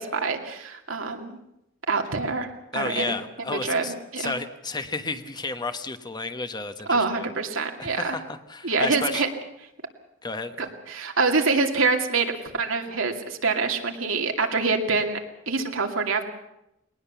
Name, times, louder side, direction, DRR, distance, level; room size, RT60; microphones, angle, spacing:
voice 1, 0.0-1.4 1.9-2.5 2.7-3.2 3.5-4.3 6.8-8.2 8.6-9.3 10.6-15.2 15.5-16.2, right 4 dB, 85° right, 3 dB, 2.5 m, -25 dB
voice 2, 2.7-7.2 7.8-9.2 10.2-10.7, left 3 dB, 20° left, 9 dB, 1.1 m, -32 dB
20.5 x 19.0 x 7.0 m, 0.86 s
head